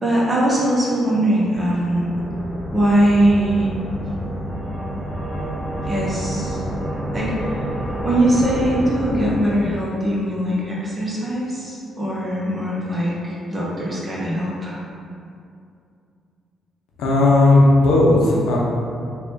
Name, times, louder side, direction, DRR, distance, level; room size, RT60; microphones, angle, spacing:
voice 1, 0.0-2.1 2.7-3.7 5.8-6.6 7.1-7.6 8.0-14.8, right 1 dB, 25° right, -5 dB, 0.9 m, -21 dB
sound 1, 1.5-10.0, equal, ahead, 0.5 m, -28 dB
voice 2, 17.0-18.6, left 2 dB, 90° left, -3 dB, 0.6 m, -14 dB
3.3 x 2.4 x 3.7 m, 2.4 s
cardioid pair, 90°, 0 cm